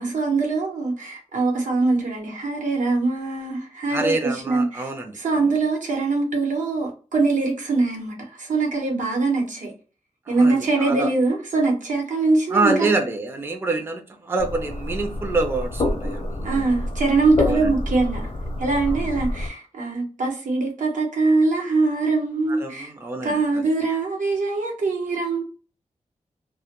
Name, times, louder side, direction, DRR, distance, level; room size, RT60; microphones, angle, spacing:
voice 1, 0.0-9.7 10.3-12.9 16.4-18.3 18.6-22.9 23.2-25.4, right 3 dB, 85° right, 0.9 m, -23 dB
voice 2, 3.9-5.5 10.3-11.1 12.5-16.6 17.4-17.7 18.9-19.0 22.5-23.7, right 3 dB, 20° right, 0.4 m, -26 dB
sound 1, 14.4-19.5, left 1 dB, 45° left, 0.5 m, -27 dB
2.1 x 2.1 x 2.8 m
wide cardioid pair, 125°, 13 cm